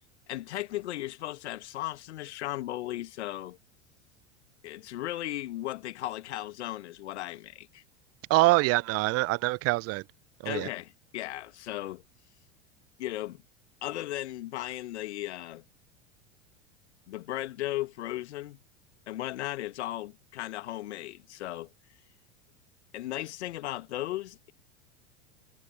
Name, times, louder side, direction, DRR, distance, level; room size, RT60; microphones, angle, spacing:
voice 1, 0.3-3.6 4.6-7.8 10.4-12.0 13.0-13.4 13.8-15.6 17.1-18.6 19.1-21.7 22.9-24.5, left 15 dB, 65° left, 1.7 m, -36 dB
voice 2, 8.3-10.0 10.4-10.7, right 21 dB, 40° right, 1.0 m, -24 dB
figure-of-eight pair, 80°, 37 cm